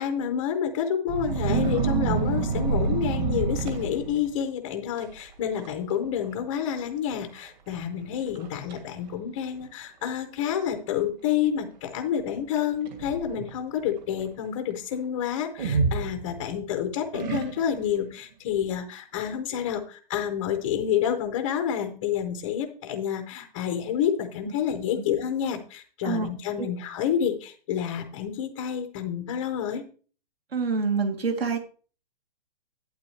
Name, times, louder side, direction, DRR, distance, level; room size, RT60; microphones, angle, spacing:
voice 1, 0.0-29.8, left 9 dB, 10° left, 6 dB, 0.4 m, -29 dB
sound 1, 1.1-4.3 5.0-5.2 5.5-6.0 6.2-6.3 7.1-7.2 7.7-7.8 8.3-8.8 9.6-9.7 12.6-13.6 15.6-16.6 17.1-17.9, right 5 dB, 45° right, 2.3 m, -27 dB
voice 2, 30.5-31.6, right 4 dB, 85° right, 3 dB, 2.6 m, -26 dB
11.5 x 8.7 x 3.1 m, 0.40 s
hypercardioid pair, 160°, 30 cm